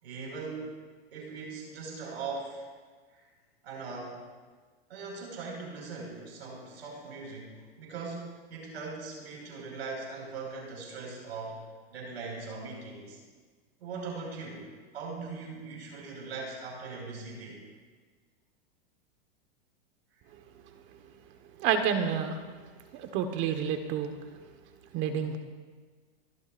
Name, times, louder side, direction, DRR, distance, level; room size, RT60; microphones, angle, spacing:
voice 1, 0.0-0.7 1.1-2.7 3.1-3.2 3.6-4.2 4.9-11.6 11.9-13.2 13.8-14.7 14.9-17.6, right 4 dB, 90° right, -1 dB, 5.3 m, -40 dB
voice 2, 21.6-22.4 22.9-24.1 24.9-25.4, right 7 dB, 40° right, 7 dB, 1.4 m, -29 dB
29.0 x 12.0 x 2.6 m, 1.5 s
hypercardioid pair, 135°, 31 cm